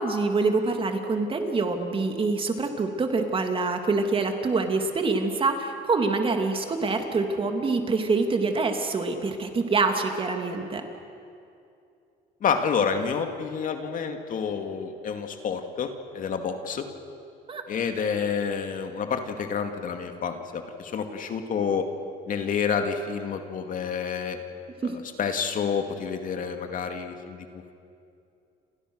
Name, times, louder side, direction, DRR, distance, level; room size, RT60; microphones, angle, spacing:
voice 1, 0.0-10.8 17.5-17.6 24.8-24.9, right 3 dB, 30° right, 4 dB, 2.8 m, -25 dB
voice 2, 12.4-16.9 17.7-21.9 22.3-24.4 24.8-27.7, left 6 dB, 55° left, 6 dB, 2.4 m, -29 dB
30.0 x 26.5 x 6.5 m, 2.6 s
cardioid pair, 110°, 17 cm